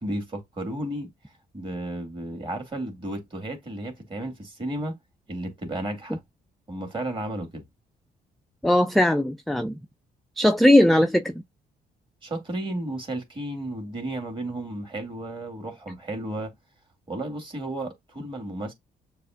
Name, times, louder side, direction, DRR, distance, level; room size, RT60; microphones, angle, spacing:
voice 1, 0.0-1.1 1.5-5.0 5.3-6.2 6.7-7.6 12.2-16.5 17.1-18.7, right 1 dB, 25° right, 2.1 m, -33 dB
voice 2, 8.6-9.8 10.4-11.4, left 1 dB, ahead, 0.3 m, -19 dB
6.8 x 2.5 x 2.3 m
supercardioid pair, 70°, 18 cm